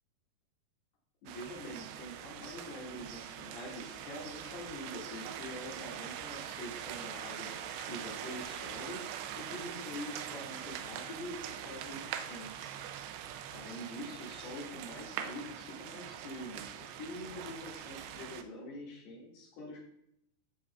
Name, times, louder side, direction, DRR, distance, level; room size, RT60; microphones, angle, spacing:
voice 1, 1.2-9.0 9.4-12.7 13.5-19.8, left 1 dB, 70° left, -4 dB, 4.3 m, -45 dB
sound 1, 1.3-18.4, right 10 dB, 85° right, 2.8 m, -43 dB
14.5 x 7.0 x 2.5 m, 0.77 s
omnidirectional pair, 4.9 m